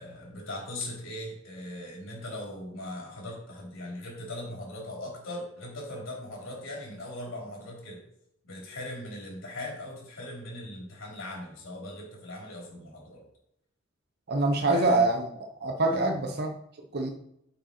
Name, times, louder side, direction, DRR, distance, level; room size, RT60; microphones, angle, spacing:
voice 1, 0.0-8.0 8.4-13.2 14.6-15.0 15.9-16.1, left 1 dB, 70° left, -2 dB, 3.5 m, -39 dB
voice 2, 14.3-15.3 15.6-16.5 16.9-17.1, right 2 dB, 50° right, 4 dB, 0.9 m, -25 dB
8.6 x 5.4 x 4.4 m, 0.77 s
head